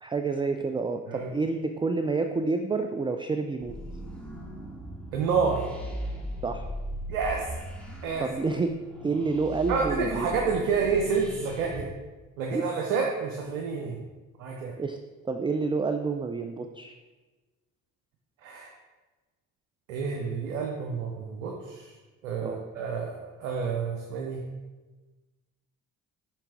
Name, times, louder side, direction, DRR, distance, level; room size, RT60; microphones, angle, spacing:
voice 1, 0.0-3.7 6.4-6.7 8.2-8.7 9.0-10.3 12.5-12.6 14.8-15.0 15.2-16.9 22.4-22.6, right 4 dB, 15° right, 6 dB, 0.3 m, -29 dB
sound 1, 3.6-11.9, equal, ahead, 2.0 m, -38 dB
voice 2, 5.1-5.6 7.1-7.5 8.0-8.3 9.7-11.9 12.4-14.0 14.4-14.7 18.4-18.7 19.9-21.9 22.2-24.4, right 5 dB, 80° right, 1 dB, 0.8 m, -29 dB
7.2 x 5.7 x 3.5 m, 1.2 s
hypercardioid pair, 45°, 41 cm